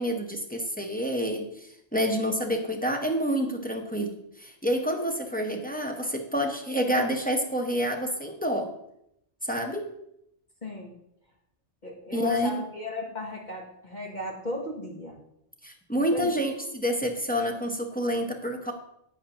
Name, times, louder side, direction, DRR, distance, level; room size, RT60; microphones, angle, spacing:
voice 1, 0.0-8.7 9.4-9.9 12.1-12.6 15.6-18.7, equal, 10° left, 2 dB, 0.9 m, -28 dB
voice 2, 10.6-10.9 11.8-15.2 16.1-16.3, left 1 dB, 40° left, -1 dB, 1.3 m, -35 dB
10.5 x 8.7 x 3.0 m, 0.77 s
omnidirectional pair, 1.2 m